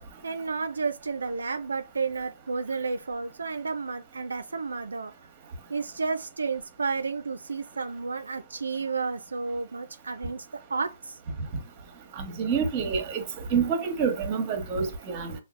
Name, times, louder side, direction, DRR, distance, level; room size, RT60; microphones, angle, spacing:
voice 1, 0.2-5.1 5.7-11.2, right 4 dB, 85° right, 0.4 m, -31 dB
voice 2, 12.2-13.2 13.5-15.3, right 6 dB, 30° right, 0.9 m, -27 dB
5.6 x 2.3 x 2.4 m
hypercardioid pair, 140°, 0 cm